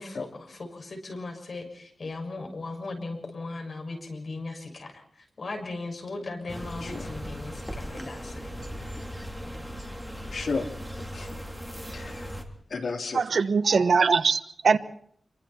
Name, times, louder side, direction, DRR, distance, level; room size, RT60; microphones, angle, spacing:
voice 1, 0.0-8.5, left 3 dB, 55° left, 6.6 m, -38 dB
sound 1, 6.5-12.4, equal, ahead, 3.3 m, -38 dB
voice 2, 10.3-10.7 10.9-11.4 11.9-12.3 12.7-13.2, left 4 dB, 75° left, 3.6 m, -33 dB
voice 3, 13.1-14.8, right 5 dB, 75° right, 1.2 m, -22 dB
27.5 x 24.0 x 4.4 m
wide cardioid pair, 115°, 0 cm